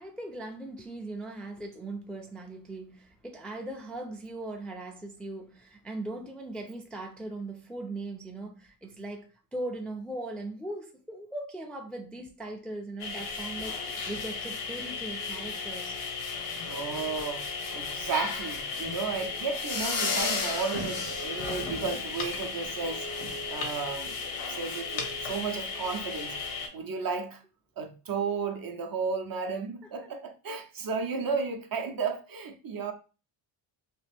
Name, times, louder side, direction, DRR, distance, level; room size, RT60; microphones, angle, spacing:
voice 1, 0.0-16.0, right 2 dB, ahead, 0.4 m, -39 dB
sound 1, 13.0-26.7, left 4 dB, 85° left, 1.0 m, -34 dB
voice 2, 16.7-24.1 24.5-26.4 26.7-27.4 27.8-32.9, right 5 dB, 45° right, 0.6 m, -33 dB
3.0 x 2.4 x 3.3 m
cardioid pair, 105°, 50 cm